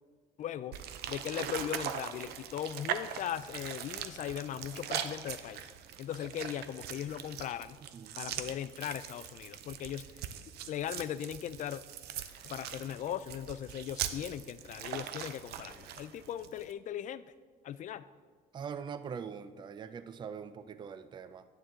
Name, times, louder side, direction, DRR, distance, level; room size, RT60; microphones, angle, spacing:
voice 1, 0.4-5.7 6.0-7.8 8.2-10.0 10.7-11.8 12.4-17.2 17.6-18.0, left 10 dB, 50° left, 15 dB, 0.4 m, -38 dB
sound 1, 0.7-16.7, right 9 dB, 75° right, 0.6 m, -41 dB
voice 2, 18.5-21.5, right 6 dB, 25° right, 12 dB, 0.4 m, -42 dB
10.0 x 6.9 x 3.8 m, 1.5 s
cardioid pair, 110°, 17 cm